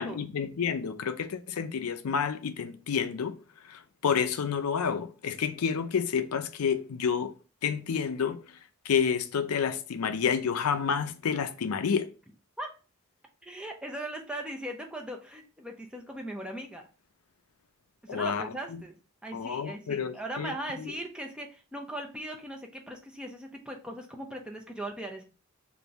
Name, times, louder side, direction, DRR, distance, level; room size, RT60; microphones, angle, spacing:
voice 1, 0.0-3.4 3.6-7.3 7.6-8.6 8.8-12.1 18.1-18.8 19.3-20.9, left 6 dB, 80° left, 0.4 m, -29 dB
voice 2, 13.4-16.8 18.0-19.0 19.2-25.2, right 1 dB, 5° right, 0.5 m, -39 dB
3.4 x 2.6 x 3.9 m
head